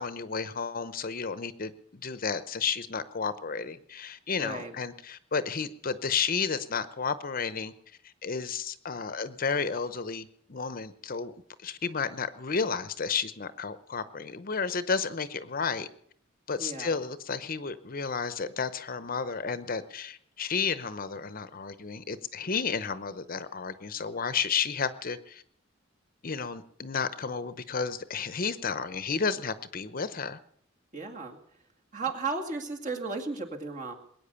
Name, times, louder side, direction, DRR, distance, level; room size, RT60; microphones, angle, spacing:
voice 1, 0.0-7.7 8.2-11.3 11.6-15.9 16.5-25.4 26.2-30.4, left 5 dB, 45° left, 13 dB, 0.8 m, -32 dB
voice 2, 4.4-4.7 16.6-16.9 30.9-31.4 31.9-33.9, right 4 dB, 40° right, 2 dB, 2.2 m, -34 dB
21.5 x 9.3 x 6.9 m, 0.66 s
head